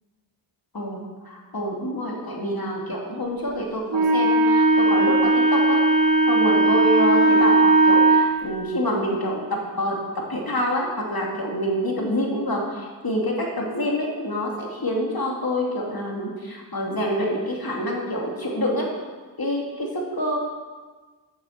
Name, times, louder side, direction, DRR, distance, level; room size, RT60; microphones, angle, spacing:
voice 1, 0.7-5.8 6.3-10.0 10.3-18.9 19.4-20.4, equal, 50° left, -2 dB, 2.7 m, -27 dB
Wind instrument woodwind instrument, 3.9-8.3, right 2 dB, 80° right, 2.6 m, -17 dB
9.5 x 7.2 x 6.6 m, 1.4 s
cardioid pair, 40°, 46 cm